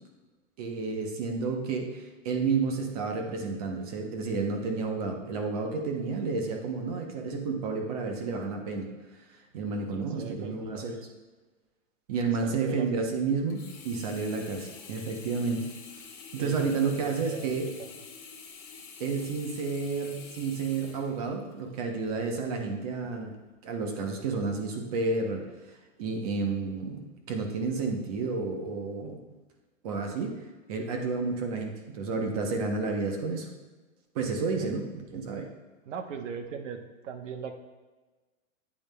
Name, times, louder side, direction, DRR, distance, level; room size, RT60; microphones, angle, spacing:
voice 1, 0.6-8.9 9.5-11.1 12.1-15.7 16.3-17.7 19.0-23.3 23.6-25.5 26.0-29.2 29.8-30.4 30.7-33.5 34.1-35.5, right 4 dB, 30° right, 3 dB, 0.8 m, -31 dB
voice 2, 9.9-11.2 12.3-13.0 16.3-17.5 17.8-17.9 34.5-34.7 35.8-37.5, right 6 dB, 70° right, 7 dB, 1.0 m, -40 dB
Sink (filling or washing), 13.5-21.7 22.3-22.4, left 5 dB, 20° left, 0.8 m, -47 dB
9.1 x 8.5 x 2.2 m, 1.3 s
supercardioid pair, 175°, 39 cm